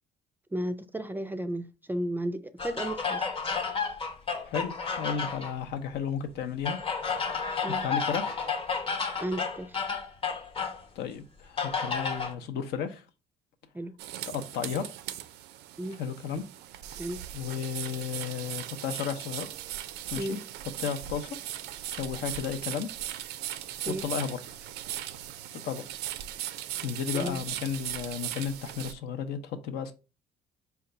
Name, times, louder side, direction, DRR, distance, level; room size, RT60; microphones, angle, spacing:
voice 1, 0.5-3.3 7.6-7.8 9.2-9.8 13.7-13.9 15.8-16.0 17.0-17.2 20.1-20.4 23.8-24.0 27.1-27.4, right 1 dB, 10° right, 0.3 m, -34 dB
sound 1, 2.6-5.5 6.6-10.8 11.6-12.3, left 5 dB, 30° left, 0.8 m, -31 dB
voice 2, 4.5-6.8 7.7-8.4 11.0-13.0 14.3-14.9 15.9-16.4 17.3-19.5 20.1-20.4 20.8-21.4 21.9-22.9 23.9-24.4 25.5-25.8 26.8-29.9, left 7 dB, 75° left, 0.7 m, -33 dB
sound 2, 14.0-28.9, right 12 dB, 85° right, 0.4 m, -39 dB
4.4 x 2.3 x 3.8 m
cardioid pair, 110°, 17 cm